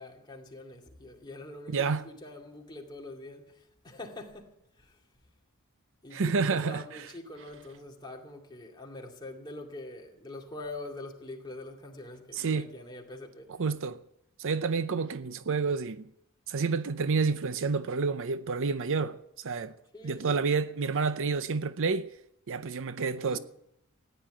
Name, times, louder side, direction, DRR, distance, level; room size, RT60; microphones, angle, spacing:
voice 1, 0.0-5.0 6.0-13.5 19.9-20.4 23.2-23.4, left 2 dB, 20° left, 2.4 m, -44 dB
voice 2, 1.7-2.0 6.1-7.0 12.3-12.7 13.6-14.0 14.4-16.1 16.5-19.2 19.4-19.7 20.0-22.1 22.5-23.4, right 4 dB, 60° right, 0.6 m, -29 dB
15.0 x 10.0 x 8.9 m
head